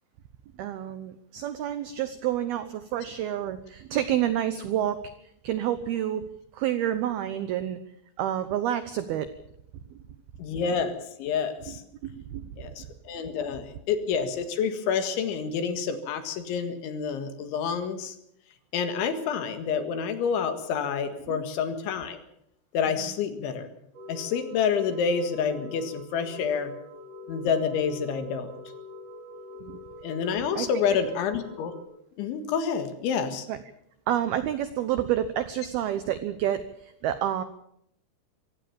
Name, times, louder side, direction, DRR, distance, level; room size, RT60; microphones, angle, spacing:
voice 1, 0.6-5.0 5.4-6.2 6.5-7.8 8.2-9.3 12.0-12.5 21.3-21.4 29.6-29.8 30.6-30.7 33.5-33.6 34.1-37.4, right 11 dB, 80° right, 11 dB, 2.2 m, -29 dB
voice 2, 10.4-11.8 12.6-18.2 18.7-22.2 22.7-23.7 24.1-26.7 27.3-28.5 30.0-31.7 32.2-33.5, left 6 dB, 70° left, 8 dB, 4.1 m, -28 dB
sound 1, 23.9-31.8, left 2 dB, 40° right, 5.5 m, -44 dB
24.5 x 16.5 x 7.1 m, 0.73 s
omnidirectional pair, 5.8 m